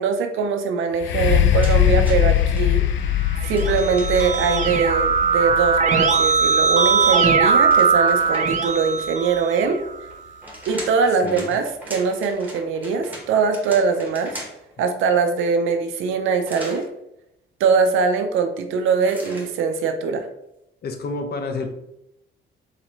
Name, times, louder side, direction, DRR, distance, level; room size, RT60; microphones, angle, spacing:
voice 1, 0.0-2.8 3.4-9.8 10.7-14.4 14.8-16.9 17.6-20.3, right 5 dB, 85° right, 7 dB, 0.6 m, -22 dB
sound 1, 1.0-8.7 9.4-9.5, left 11 dB, 75° left, 0.5 m, -22 dB
sound 2, 1.6-2.6 3.5-4.6 6.4-8.7 10.1-14.7 16.4-16.9 19.0-19.5, right 1 dB, 10° right, 1.5 m, -39 dB
Keyboard (musical), 3.3-9.9, right 5 dB, 40° right, 0.7 m, -20 dB
voice 2, 20.8-21.7, left 3 dB, 55° left, 5 dB, 0.8 m, -29 dB
4.1 x 3.8 x 3.1 m, 0.82 s
cardioid pair, 90°, 20 cm